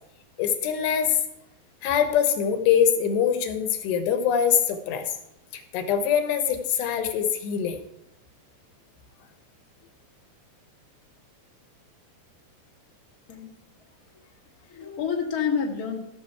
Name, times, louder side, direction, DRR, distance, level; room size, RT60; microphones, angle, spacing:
voice 1, 0.4-1.2 1.8-5.1 5.5-7.8, left 8 dB, 80° left, 7 dB, 3.2 m, -23 dB
voice 2, 14.6-16.0, left 6 dB, 45° left, -1 dB, 1.1 m, -29 dB
15.5 x 6.9 x 4.6 m, 0.81 s
omnidirectional pair, 4.9 m